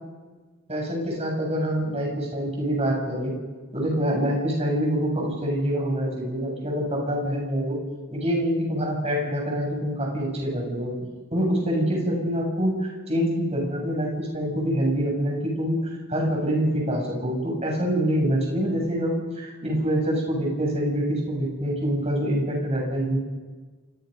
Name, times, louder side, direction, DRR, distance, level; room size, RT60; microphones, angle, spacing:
voice 1, 0.7-3.3 3.7-7.8 8.1-10.9 11.3-23.2, equal, 30° right, -1 dB, 7.8 m, -25 dB
29.5 x 26.0 x 5.5 m, 1.4 s
head